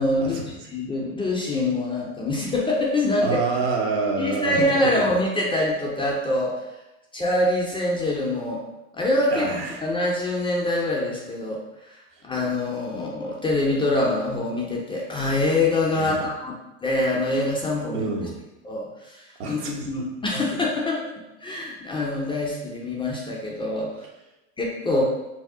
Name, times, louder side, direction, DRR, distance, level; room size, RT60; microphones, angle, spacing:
voice 1, 0.0-3.4 4.2-6.5 7.1-8.6 8.9-9.5 9.8-12.0 12.2-16.5 16.8-18.1 18.6-21.0 21.4-24.1 24.6-25.0, left 2 dB, 15° left, -3 dB, 0.4 m, -25 dB
voice 2, 3.2-4.9 9.3-9.8 15.9-16.3 17.9-18.4 19.4-19.7, right 4 dB, 55° right, 0 dB, 0.7 m, -27 dB
2.7 x 2.0 x 3.5 m, 0.98 s
hypercardioid pair, 95°, 36 cm